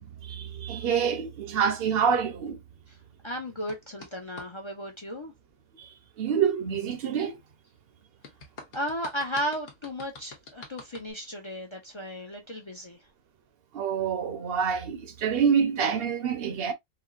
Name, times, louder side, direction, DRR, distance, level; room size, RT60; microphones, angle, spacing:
voice 1, 0.2-2.6 5.8-5.9 6.2-7.4 13.7-16.7, right 7 dB, 55° right, 0.7 m, -26 dB
voice 2, 3.2-5.3 8.7-13.0, equal, 45° left, 0.3 m, -34 dB
sound 1, 3.7-4.5 8.2-11.1, left 3 dB, 65° left, 1.3 m, -46 dB
4.3 x 2.0 x 2.4 m
omnidirectional pair, 1.5 m